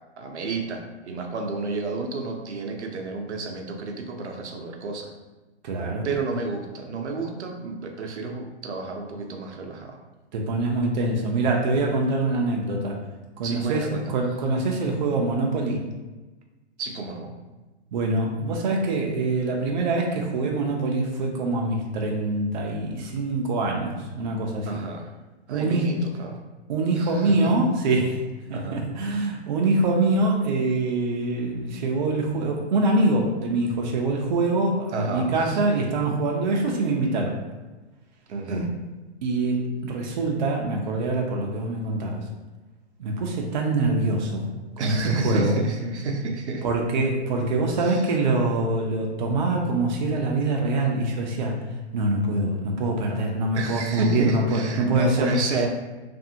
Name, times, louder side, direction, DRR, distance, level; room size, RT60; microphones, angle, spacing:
voice 1, 0.2-5.1 6.0-10.0 13.4-14.0 16.8-17.3 24.7-25.1 25.5-26.4 26.9-27.5 28.5-28.8 34.9-35.6 38.3-38.7 44.8-46.6 47.8-48.0 53.5-55.7, right 3 dB, 80° right, 2 dB, 0.7 m, -30 dB
voice 2, 5.6-6.1 10.3-13.0 13.4-15.8 17.9-24.8 25.5-25.9 26.7-28.2 28.5-37.4 39.2-42.2 43.0-44.5 44.8-45.0 45.2-45.6 46.6-51.5 51.9-55.4, right 2 dB, 45° right, 0 dB, 0.5 m, -24 dB
2.6 x 2.5 x 2.6 m, 1.2 s
hypercardioid pair, 145°, 34 cm